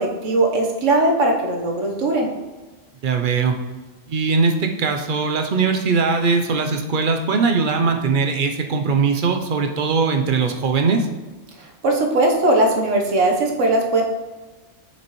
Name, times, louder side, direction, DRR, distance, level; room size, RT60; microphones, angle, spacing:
voice 1, 0.0-2.3 11.6-14.0, right 2 dB, 85° right, 1 dB, 1.4 m, -19 dB
voice 2, 3.0-3.5 4.1-11.1, right 4 dB, 50° right, 5 dB, 0.7 m, -20 dB
6.9 x 6.2 x 3.0 m, 1.3 s
omnidirectional pair, 1.2 m